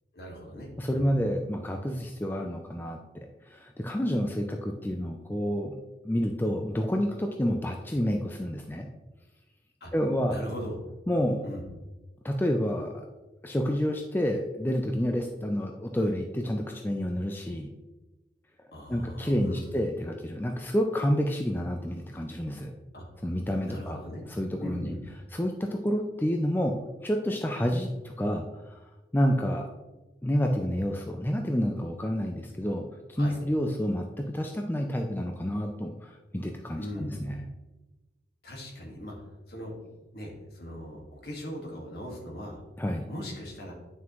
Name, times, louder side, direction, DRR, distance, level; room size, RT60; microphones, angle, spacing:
voice 1, 0.1-1.1 9.8-9.9 10.3-10.8 11.4-11.6 18.7-19.7 22.9-23.0 23.6-24.2 24.6-25.0 33.2-33.4 36.8-37.2 38.4-39.1 39.5-39.7 40.1-42.6 43.1-43.8, equal, 60° left, 0 dB, 1.8 m, -39 dB
voice 2, 0.8-3.0 3.5-5.8 6.0-8.9 9.9-10.4 11.1-11.5 12.2-13.1 13.4-17.7 18.9-22.7 23.2-24.0 24.3-24.9 25.3-26.7 27.0-28.8 29.1-29.7 30.2-37.4 42.8-43.1, equal, 10° left, 3 dB, 0.4 m, -29 dB
9.2 x 5.9 x 3.1 m, 1.1 s
head